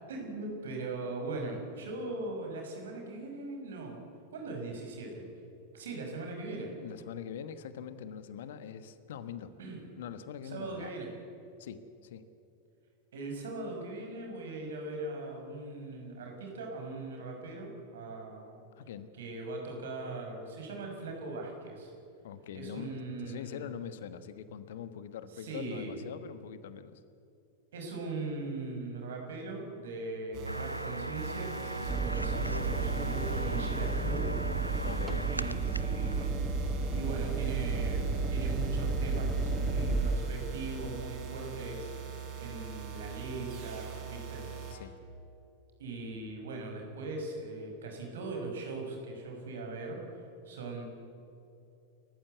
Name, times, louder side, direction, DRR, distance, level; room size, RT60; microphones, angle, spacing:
voice 1, 0.1-4.0 4.3-5.3 5.7-6.7 9.6-9.9 10.4-11.1 13.1-18.6 19.2-21.9 22.5-23.7 25.4-25.9 27.7-34.6 35.2-36.5 36.9-41.9 42.4-44.4 45.8-50.0 50.5-50.8, right 2 dB, 60° right, 2 dB, 6.1 m, -40 dB
voice 2, 6.8-9.5 10.0-10.9 11.6-12.3 18.7-19.1 22.2-27.0 34.8-35.3 44.7-44.9, left 8 dB, 55° left, 12 dB, 1.3 m, -43 dB
sound 1, 30.3-44.7, right 6 dB, 40° right, 5.3 m, -43 dB
sound 2, 30.4-36.3, right 1 dB, 90° right, 0.6 m, -39 dB
sound 3, 31.9-41.0 43.0-43.4, right 4 dB, 10° right, 1.4 m, -32 dB
29.0 x 15.0 x 8.1 m, 2.7 s
figure-of-eight pair, 90°, 0 cm